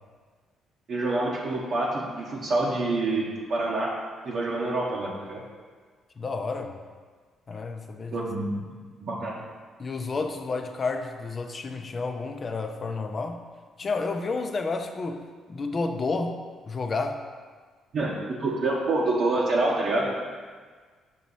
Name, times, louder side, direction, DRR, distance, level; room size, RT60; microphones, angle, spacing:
voice 1, 0.9-3.9 4.2-5.4 8.1-8.6 9.0-9.4 17.9-20.1, right 2 dB, 60° right, -5 dB, 1.0 m, -27 dB
voice 2, 6.2-6.8 7.5-8.3 9.8-13.4 13.8-17.2, left 3 dB, 40° left, 6 dB, 0.6 m, -31 dB
6.4 x 2.9 x 5.6 m, 1.5 s
supercardioid pair, 65°, 0 cm